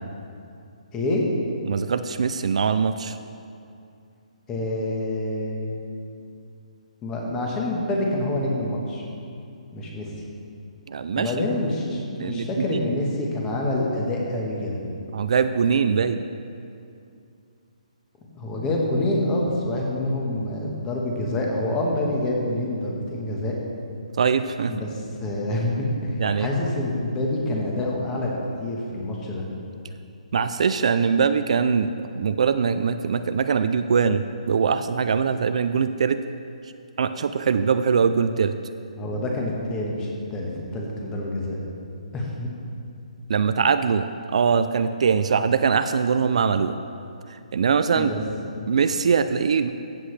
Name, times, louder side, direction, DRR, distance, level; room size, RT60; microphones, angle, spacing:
voice 1, 0.9-1.2 4.5-5.8 7.0-9.0 9.7-10.2 11.1-14.8 18.4-23.6 24.7-29.5 39.0-41.6 42.1-42.5 46.4-46.5 48.0-48.2 48.5-48.7, left 1 dB, 15° left, -1 dB, 1.3 m, -27 dB
voice 2, 1.7-3.2 10.9-11.5 12.2-12.8 15.1-16.2 24.2-24.7 26.2-26.5 30.3-36.2 37.0-38.5 43.3-46.8 47.3-48.1 48.7-49.7, right 6 dB, 60° right, 10 dB, 0.4 m, -22 dB
14.5 x 7.8 x 3.3 m, 2.5 s
hypercardioid pair, 165°, 4 cm